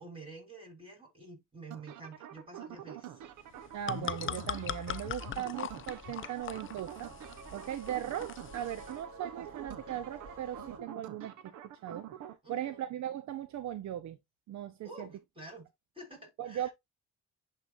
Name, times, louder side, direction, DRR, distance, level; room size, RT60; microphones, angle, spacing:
voice 1, 0.0-3.2 12.4-12.8 14.8-15.7 15.9-16.7, right 2 dB, 15° right, 5.4 m, -49 dB
sound 1, 1.7-12.4, right 10 dB, 85° right, 1.0 m, -47 dB
sound 2, 3.2-10.8, right 2 dB, 45° right, 3.0 m, -53 dB
sound 3, 3.5-9.0, left 10 dB, 45° left, 0.5 m, -41 dB
voice 2, 3.7-7.1 7.5-11.5 11.8-12.1 12.5-14.2 14.5-15.1 16.4-16.7, right 11 dB, 65° right, 0.7 m, -38 dB
11.0 x 3.8 x 2.5 m
cardioid pair, 90°, 30 cm